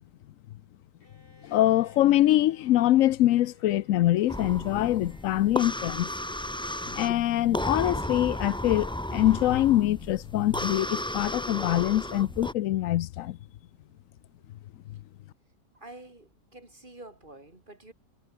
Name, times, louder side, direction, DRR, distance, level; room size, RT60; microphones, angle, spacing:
Bowed string instrument, 1.0-5.7, left 1 dB, 45° left, 7.7 m, -59 dB
voice 1, 1.4-6.1 6.9-13.4, left 14 dB, 85° left, 1.0 m, -24 dB
sound 1, 4.3-12.5, left 1 dB, 5° left, 0.7 m, -34 dB
voice 2, 15.7-17.9, right 2 dB, 40° right, 4.3 m, -48 dB
omnidirectional pair, 1.3 m